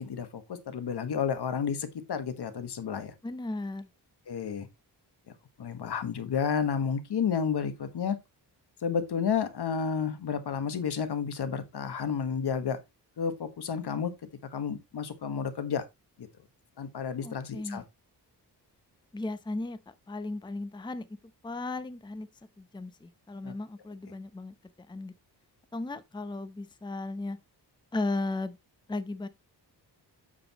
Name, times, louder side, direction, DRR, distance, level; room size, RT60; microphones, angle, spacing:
voice 1, 0.0-3.1 4.3-4.7 5.6-8.2 8.8-12.8 13.2-14.1 14.5-15.9 16.2-16.3 16.8-17.8 23.4-23.5, left 7 dB, 65° left, 1.4 m, -31 dB
voice 2, 3.2-3.9 17.2-17.8 19.1-19.8 20.1-21.1 21.4-22.3 22.6-24.5 24.9-25.1 25.7-27.4 27.9-28.6 28.9-29.3, left 2 dB, 10° left, 0.7 m, -35 dB
8.7 x 6.9 x 2.9 m
wide cardioid pair, 110°, 42 cm